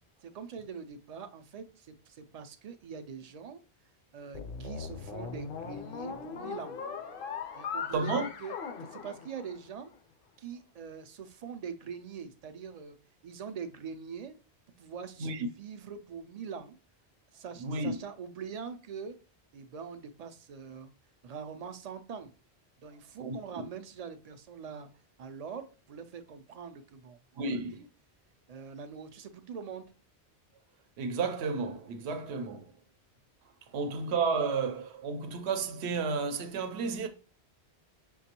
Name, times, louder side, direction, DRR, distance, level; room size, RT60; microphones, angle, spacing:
voice 1, 0.2-3.6 4.1-6.8 7.5-8.5 8.8-9.9 10.4-13.0 13.2-14.4 14.8-16.8 17.3-19.2 19.5-20.9 21.2-22.3 22.8-24.9 25.2-27.8 28.5-29.9, right 6 dB, 55° right, 0.4 m, -43 dB
sound 1, 4.3-9.8, left 6 dB, 65° left, 0.7 m, -39 dB
voice 2, 7.9-8.3 15.2-15.5 17.6-18.0 23.2-23.7 27.3-27.9 31.0-32.8 33.7-37.1, right 4 dB, 80° right, 0.9 m, -32 dB
5.8 x 2.2 x 2.8 m
omnidirectional pair, 1.1 m